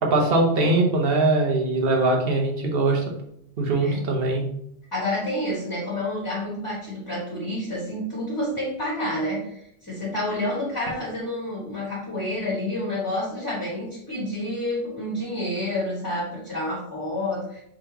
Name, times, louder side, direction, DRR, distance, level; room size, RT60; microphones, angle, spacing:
voice 1, 0.0-3.1 3.6-4.4, right 2 dB, 65° right, 1 dB, 1.1 m, -21 dB
voice 2, 4.9-17.6, left 1 dB, 20° left, -7 dB, 1.5 m, -29 dB
4.8 x 3.8 x 2.9 m, 0.74 s
omnidirectional pair, 1.1 m